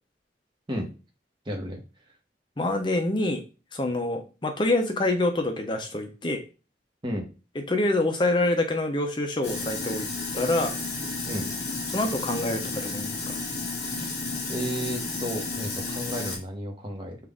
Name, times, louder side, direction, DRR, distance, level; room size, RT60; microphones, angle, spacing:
voice 1, 1.4-1.8 7.0-7.3 11.2-11.4 13.9-14.1 14.5-17.2, equal, 25° right, 1 dB, 1.0 m, -32 dB
voice 2, 2.6-3.4 3.7-6.4 7.7-10.1 10.3-10.8 11.9-13.2, left 2 dB, 25° left, 4 dB, 0.6 m, -26 dB
Sink (filling or washing), 9.4-16.4, left 3 dB, 65° left, 1.9 m, -32 dB
5.6 x 2.5 x 3.6 m, 0.32 s
head